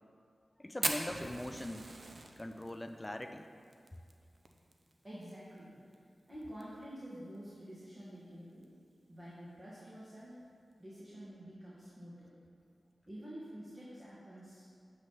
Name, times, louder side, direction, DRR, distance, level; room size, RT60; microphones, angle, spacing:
voice 1, 0.6-1.9 2.4-3.5, left 1 dB, 20° left, 7 dB, 0.4 m, -41 dB
Fire, 0.8-5.3 5.6-5.7 5.9-6.0 6.4-6.8 7.3-7.4 8.5-8.6, right 2 dB, 55° right, 0.6 m, -39 dB
voice 2, 5.0-5.7 6.3-8.6 9.1-10.3 10.8-12.3 13.1-14.7, equal, 20° right, -9 dB, 1.6 m, -48 dB
7.7 x 3.1 x 5.6 m, 2.2 s
cardioid pair, 45°, 0 cm